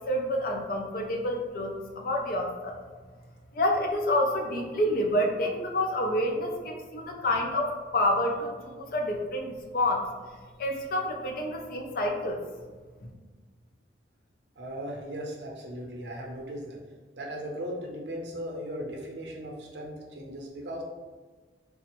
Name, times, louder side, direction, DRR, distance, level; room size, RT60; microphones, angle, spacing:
voice 1, 0.1-2.8 3.5-10.1 10.6-12.4, left 1 dB, 50° left, 2 dB, 0.4 m, -28 dB
voice 2, 14.6-16.8 17.1-20.8, equal, 65° right, -1 dB, 0.6 m, -37 dB
3.3 x 2.0 x 2.9 m, 1.4 s
head